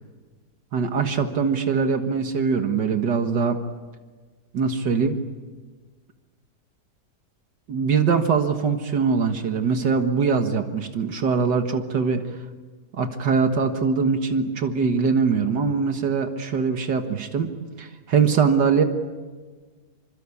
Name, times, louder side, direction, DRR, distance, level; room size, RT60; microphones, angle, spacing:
voice 1, 0.7-3.6 4.5-5.2 7.7-12.2 12.9-17.5 17.8-18.8, right 5 dB, 80° right, 6 dB, 2.2 m, -22 dB
27.5 x 25.5 x 8.5 m, 1.4 s
omnidirectional pair, 1.8 m